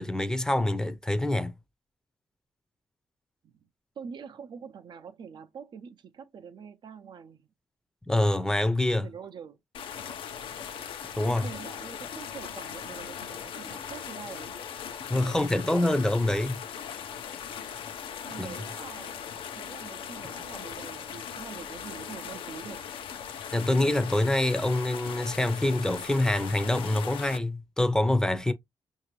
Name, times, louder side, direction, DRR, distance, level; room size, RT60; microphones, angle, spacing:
voice 1, 0.0-1.5 8.1-9.1 11.2-11.5 15.1-16.6 18.4-18.5 23.5-28.5, left 1 dB, 5° left, 0.6 m, -26 dB
voice 2, 4.0-7.5 9.0-9.6 11.2-14.6 15.1-15.6 18.3-22.8, right 6 dB, 60° right, 0.6 m, -45 dB
sound 1, 9.7-27.4, left 8 dB, 85° left, 0.7 m, -39 dB
5.7 x 2.7 x 3.1 m
cardioid pair, 90°, 9 cm